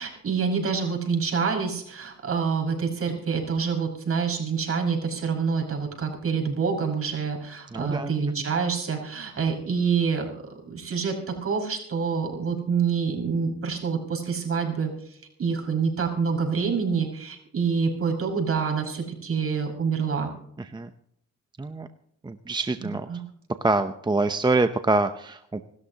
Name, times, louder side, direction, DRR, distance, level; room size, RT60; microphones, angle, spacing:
voice 1, 0.0-10.3 10.7-20.3 22.8-23.2, right 5 dB, 50° right, 2 dB, 5.8 m, -27 dB
voice 2, 7.7-8.1 8.4-8.5 20.7-20.9 21.6-21.9 22.2-23.1 23.6-25.6, right 3 dB, 15° right, 8 dB, 0.8 m, -25 dB
26.5 x 13.0 x 2.9 m, 0.71 s
cardioid pair, 90°, 30 cm